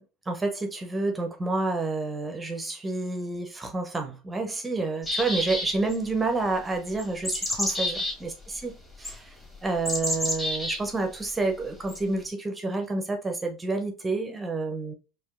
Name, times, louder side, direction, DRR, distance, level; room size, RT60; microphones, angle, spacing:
voice 1, 0.0-8.7 9.0-9.4 9.6-14.9, right 3 dB, 15° right, 0.7 m, -29 dB
sound 1, 5.0-6.0 7.0-8.1 9.0-9.1 9.8-10.8 11.9-12.0, left 1 dB, 15° left, 1.7 m, -29 dB
4.5 x 2.5 x 2.5 m
hypercardioid pair, 75°, 0 cm